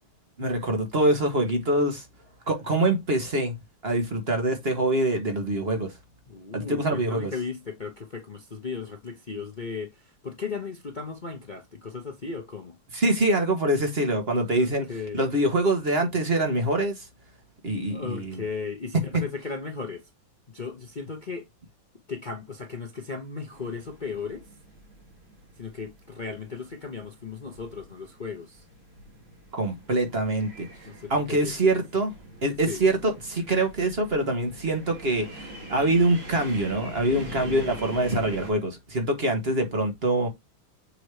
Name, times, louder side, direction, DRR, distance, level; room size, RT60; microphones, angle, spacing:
voice 1, 0.4-2.0 2.5-3.5 3.8-5.9 6.5-7.3 12.9-14.9 15.1-17.0 17.6-18.4 29.5-30.7 31.1-32.1 32.4-40.3, right 1 dB, 35° right, 1.5 m, -24 dB
voice 2, 6.3-12.7 14.6-15.2 17.9-20.1 20.5-21.5 22.1-24.5 25.6-28.6 30.9-31.6 32.7-32.8 37.2-37.7, left 5 dB, 50° left, 0.5 m, -36 dB
sound 1, 23.5-38.5, right 1 dB, 70° right, 3.1 m, -44 dB
6.8 x 3.0 x 4.8 m
omnidirectional pair, 2.2 m